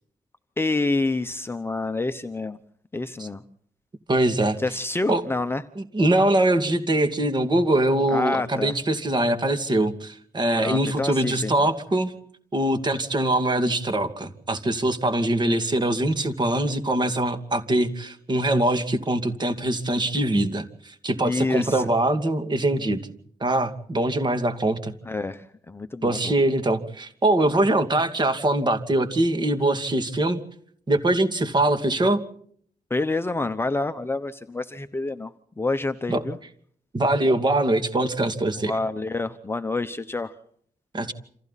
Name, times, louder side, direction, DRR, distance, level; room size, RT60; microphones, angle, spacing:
voice 1, 0.6-2.6 2.9-3.4 4.6-5.6 8.1-8.7 10.6-11.7 21.2-21.9 25.0-26.3 32.9-36.4 38.6-40.3, left 2 dB, 15° left, 9 dB, 0.9 m, -28 dB
voice 2, 4.1-4.6 5.1-5.2 5.9-12.1 12.5-23.0 23.4-24.9 26.0-30.4 30.9-32.2 36.1-36.2 36.9-38.7 40.9-41.1, right 1 dB, 30° right, 8 dB, 2.5 m, -23 dB
28.5 x 27.0 x 4.2 m, 0.62 s
wide cardioid pair, 175°, 15 cm